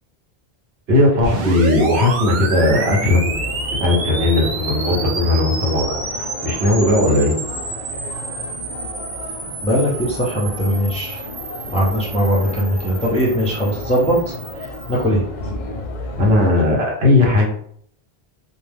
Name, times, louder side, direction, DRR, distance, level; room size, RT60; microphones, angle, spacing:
voice 1, 0.9-3.5 3.8-6.0 6.4-7.3 16.2-17.5, left 2 dB, 80° right, -1 dB, 1.0 m, -17 dB
sound 1, 1.2-15.1, right 3 dB, 55° right, 0.6 m, -29 dB
sound 2, 3.3-16.5, left 2 dB, 55° left, 0.6 m, -33 dB
voice 2, 9.6-11.2 11.7-14.3 14.9-15.2, equal, 10° left, -4 dB, 0.4 m, -19 dB
2.2 x 2.2 x 3.3 m, 0.63 s
omnidirectional pair, 1.0 m